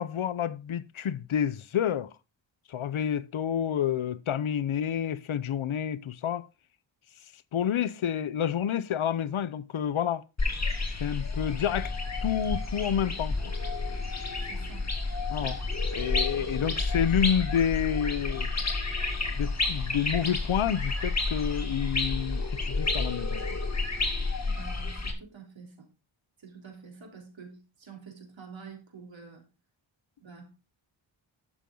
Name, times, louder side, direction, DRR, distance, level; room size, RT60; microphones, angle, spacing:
voice 1, 0.0-2.1 2.7-6.5 7.5-10.2 11.0-11.9 12.2-13.4 15.3-15.6 15.9-18.5 19.4-23.4, left 9 dB, 80° left, 0.8 m, -29 dB
sound 1, 10.4-25.1, left 3 dB, 35° left, 2.3 m, -30 dB
voice 2, 14.4-14.9 16.3-16.7 24.5-25.9 26.4-29.4 30.2-30.5, right 5 dB, 70° right, 3.6 m, -48 dB
11.5 x 7.1 x 3.8 m
wide cardioid pair, 100°, 47 cm